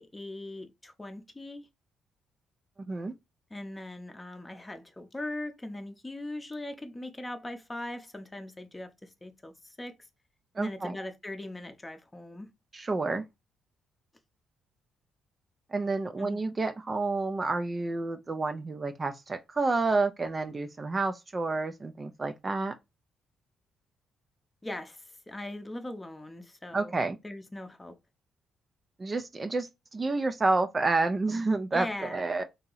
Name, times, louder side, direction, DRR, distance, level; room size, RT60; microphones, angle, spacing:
voice 1, 0.0-1.7 3.5-10.0 10.6-12.5 16.2-16.4 24.6-27.0 27.2-28.0 31.7-32.2, left 1 dB, 15° left, 0.7 m, -40 dB
voice 2, 10.5-10.9 12.7-13.2 15.7-22.7 26.7-27.2 29.0-32.4, right 3 dB, 30° right, 0.4 m, -29 dB
2.9 x 2.7 x 3.8 m
cardioid pair, 90°, 0 cm